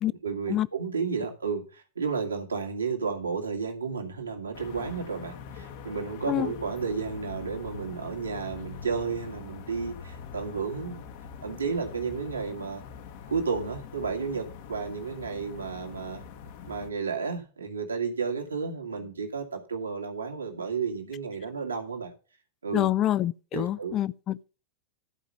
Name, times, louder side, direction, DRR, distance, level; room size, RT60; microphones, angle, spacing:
voice 1, 0.2-11.0 11.4-12.8 13.3-16.2 16.6-22.1 22.6-22.9 23.5-24.0, right 5 dB, 75° right, 1.9 m, -32 dB
sound 1, 4.5-16.9, left 6 dB, 50° left, 1.1 m, -43 dB
voice 2, 22.7-24.4, left 12 dB, 30° left, 0.4 m, -26 dB
12.0 x 5.0 x 5.6 m
figure-of-eight pair, 90°, 0 cm